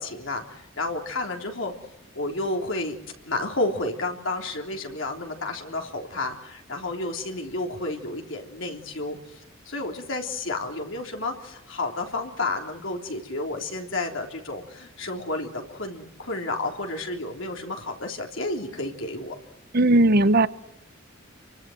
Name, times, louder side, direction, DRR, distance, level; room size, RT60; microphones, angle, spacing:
voice 1, 0.0-1.7 2.2-3.0 3.3-19.4, left 2 dB, 70° left, 2 dB, 3.5 m, -31 dB
voice 2, 19.7-20.5, right 2 dB, 50° right, 15 dB, 1.0 m, -17 dB
28.5 x 24.5 x 7.9 m, 0.81 s
head